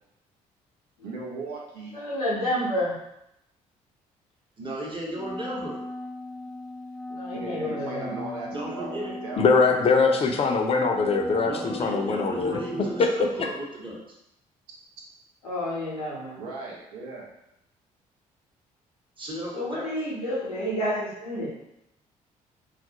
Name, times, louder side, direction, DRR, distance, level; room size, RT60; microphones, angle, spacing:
voice 1, 1.0-1.9 7.3-10.3 16.4-17.3, right 3 dB, 75° right, -3 dB, 0.6 m, -38 dB
voice 2, 1.9-2.9 7.1-8.4 15.4-16.4 19.5-21.5, equal, 90° left, -5 dB, 0.6 m, -30 dB
voice 3, 4.6-5.8 8.5-9.2 11.4-14.2 19.2-19.9, right 1 dB, 25° right, -3 dB, 0.9 m, -35 dB
Wind instrument woodwind instrument, 5.1-13.3, left 2 dB, 5° left, 0.7 m, -38 dB
voice 4, 9.4-13.3, left 4 dB, 30° left, 3 dB, 0.4 m, -22 dB
2.3 x 2.0 x 2.8 m, 0.83 s
hypercardioid pair, 50°, 19 cm